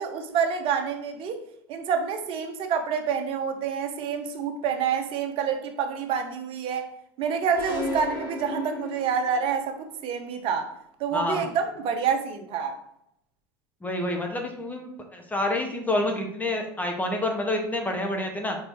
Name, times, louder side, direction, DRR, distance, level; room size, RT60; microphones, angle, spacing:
voice 1, 0.0-6.9 7.2-10.7 11.0-12.8, right 6 dB, 55° right, 6 dB, 1.1 m, -28 dB
sound 1, 7.5-9.5, left 2 dB, 90° left, 2.3 m, -34 dB
voice 2, 11.1-11.4 13.8-18.6, left 1 dB, 15° left, 3 dB, 1.2 m, -28 dB
4.7 x 4.6 x 4.6 m, 0.75 s
hypercardioid pair, 90°, 11 cm